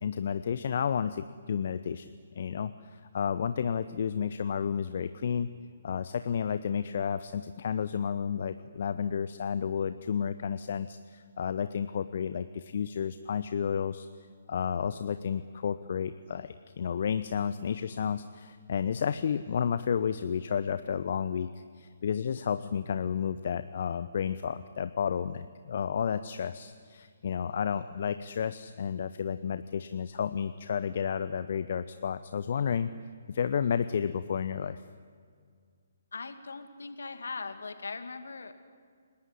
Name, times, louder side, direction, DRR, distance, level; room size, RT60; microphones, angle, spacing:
voice 1, 0.0-5.5 5.8-14.1 14.5-32.9 33.3-34.8, left 7 dB, 50° left, 12 dB, 0.8 m, -31 dB
voice 2, 36.1-38.5, left 4 dB, 65° left, 8 dB, 2.4 m, -40 dB
29.5 x 19.0 x 9.9 m, 2.1 s
figure-of-eight pair, 135°, 0 cm